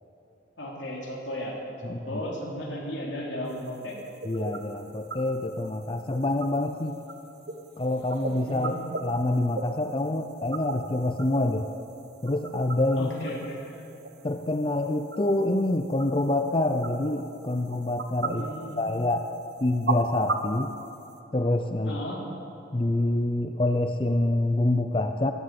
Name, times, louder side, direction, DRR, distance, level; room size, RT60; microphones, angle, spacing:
voice 1, 0.6-1.6 1.8-4.0 8.5-8.7 13.0-13.6 18.4-19.0 21.8-22.2, left 1 dB, 90° left, -1 dB, 3.2 m, -35 dB
voice 2, 1.8-2.2 4.2-6.9 7.8-8.8 9.0-11.7 12.2-13.1 14.2-18.5 18.8-19.3 19.6-20.7 21.3-22.0 22.7-25.3, left 1 dB, 30° left, 7 dB, 0.5 m, -26 dB
sound 1, 3.4-21.2, right 3 dB, 60° right, 1.1 m, -38 dB
14.0 x 11.5 x 8.9 m, 2.9 s
head